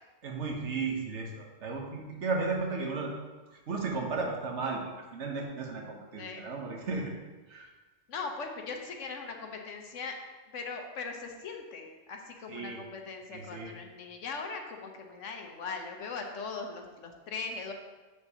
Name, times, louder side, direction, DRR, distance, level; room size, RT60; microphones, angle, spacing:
voice 1, 0.2-3.1 3.7-4.8 5.1-7.1 7.5-7.7 12.5-12.8 13.3-13.7, right 4 dB, 65° right, 1 dB, 1.2 m, -34 dB
voice 2, 8.1-10.2 10.5-17.7, left 4 dB, 75° left, 3 dB, 1.1 m, -40 dB
7.2 x 6.6 x 2.8 m, 1.3 s
omnidirectional pair, 1.3 m